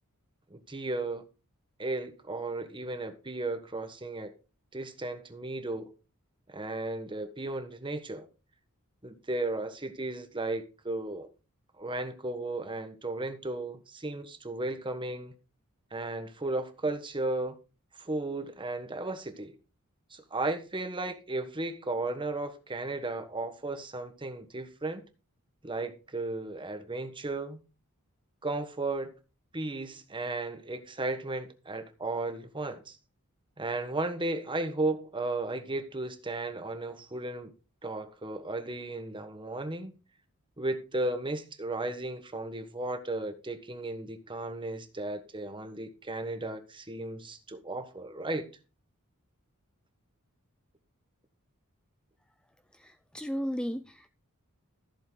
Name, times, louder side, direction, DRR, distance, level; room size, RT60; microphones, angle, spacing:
voice 1, 0.5-1.2 1.8-4.3 4.7-5.9 6.5-8.3 9.0-11.3 11.8-15.3 15.9-17.6 18.0-19.5 20.1-25.0 25.6-27.6 28.4-29.1 29.5-33.0 33.6-37.5 37.8-39.9 40.6-48.5, right 2 dB, 20° right, 1.4 m, -35 dB
voice 2, 52.7-54.1, equal, 5° left, 0.4 m, -35 dB
14.5 x 7.3 x 3.9 m
head